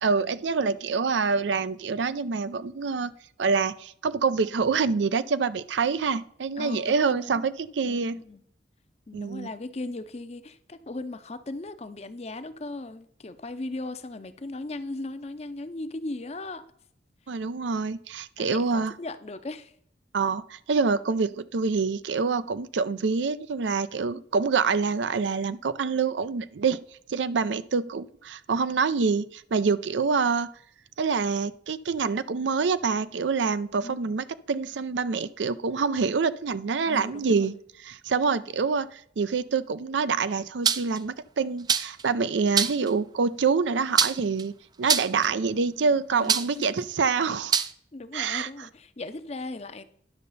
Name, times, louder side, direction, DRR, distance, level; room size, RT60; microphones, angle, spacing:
voice 1, 0.0-3.1 3.4-8.2 9.1-9.5 17.3-18.9 20.1-26.8 27.1-30.5 31.0-37.5 37.8-44.5 44.8-47.5 48.1-48.5, right 5 dB, 85° right, 15 dB, 0.5 m, -26 dB
voice 2, 6.6-7.4 7.9-8.4 9.1-16.6 17.3-17.4 18.4-19.7 33.8-34.2 36.9-37.6 46.1-46.5 47.9-49.8, left 2 dB, 35° left, 12 dB, 0.6 m, -38 dB
sound 1, 40.7-41.0 41.7-42.0 42.6-42.9 44.0-44.4 44.9-45.3 46.3-46.7 47.5-47.7, right 7 dB, 25° right, 0.3 m, -23 dB
10.0 x 6.5 x 4.1 m, 0.64 s
head